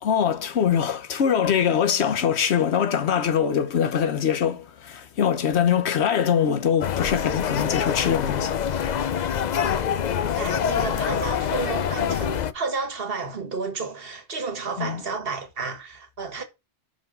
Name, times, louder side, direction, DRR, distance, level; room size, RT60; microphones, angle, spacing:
voice 1, 0.0-8.5 8.8-9.4 14.8-15.0, left 8 dB, 70° left, 1.2 m, -23 dB
sound 1, 6.8-12.5, left 8 dB, 55° left, 0.5 m, -25 dB
voice 2, 10.2-16.4, right 4 dB, 55° right, 1.6 m, -31 dB
6.1 x 5.0 x 5.2 m
omnidirectional pair, 1.2 m